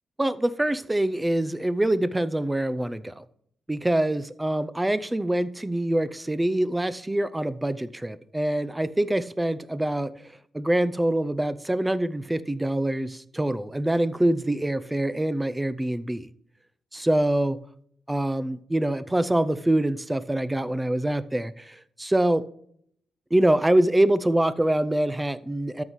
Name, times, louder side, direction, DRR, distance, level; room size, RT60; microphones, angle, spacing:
voice 1, 0.2-3.2 3.7-10.1 10.5-16.3 16.9-17.6 18.1-22.4 23.3-25.8, right 1 dB, 10° right, 14 dB, 0.4 m, -25 dB
13.0 x 5.6 x 3.1 m, 0.66 s
cardioid pair, 105°, 0 cm